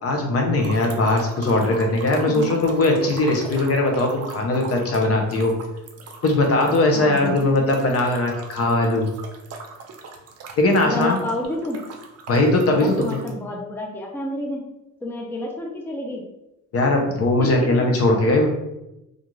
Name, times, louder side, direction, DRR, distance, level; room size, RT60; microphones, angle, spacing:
voice 1, 0.0-5.5 6.2-9.1 10.6-11.2 12.3-13.2 16.7-18.5, left 2 dB, 50° left, 1 dB, 0.7 m, -20 dB
sound 1, 0.6-13.3, right 4 dB, 55° right, 0.5 m, -40 dB
voice 2, 6.9-7.7 10.8-11.8 12.7-14.6 15.0-16.2 17.4-17.7, left 1 dB, 5° left, 0 dB, 0.4 m, -29 dB
2.4 x 2.3 x 3.0 m, 0.91 s
cardioid pair, 90°, 30 cm